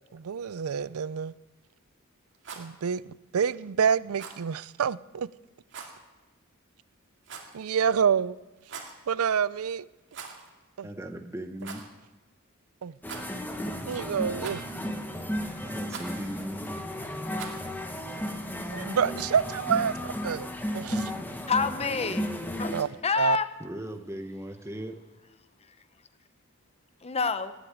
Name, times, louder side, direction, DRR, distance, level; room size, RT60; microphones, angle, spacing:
voice 1, 0.1-1.3 2.6-5.3 7.5-8.4 9.1-9.9 10.8-10.9 12.8-13.0 13.8-14.7 18.7-21.1 22.7-22.9 23.2-23.4, right 7 dB, 85° right, 0.5 m, -28 dB
Rattle, 2.3-2.7 4.1-4.4 5.7-6.0 7.2-7.6 8.6-9.0 10.1-10.5 10.8-10.9 11.6-11.9 13.0-13.5 14.4-14.8 15.9-16.2 17.3-17.7, right 5 dB, 60° right, 2.3 m, -42 dB
voice 2, 10.8-11.8 15.6-16.7 23.6-25.0, right 1 dB, 15° right, 0.9 m, -38 dB
sound 1, 13.0-22.8, equal, 10° left, 1.3 m, -34 dB
voice 3, 21.5-22.3 22.6-23.5 27.0-27.5, left 4 dB, 30° left, 0.8 m, -27 dB
18.5 x 8.2 x 8.8 m
head